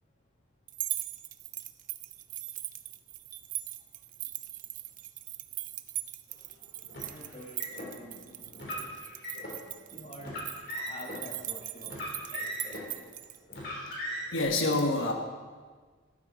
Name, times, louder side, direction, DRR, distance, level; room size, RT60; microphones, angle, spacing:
sound 1, 0.7-13.4, right 14 dB, 40° right, 0.5 m, -40 dB
Car, 6.9-7.9 8.5-9.6 10.2-11.2 11.8-12.9 13.5-14.4, equal, 55° left, 3.7 m, -38 dB
voice 1, 7.0-8.9 9.9-12.0 12.2-12.8, left 1 dB, 35° left, 0 dB, 1.7 m, -48 dB
voice 2, 13.6-14.0 14.3-15.1, left 2 dB, 75° left, 3 dB, 1.3 m, -28 dB
14.0 x 11.5 x 4.2 m, 1.5 s
head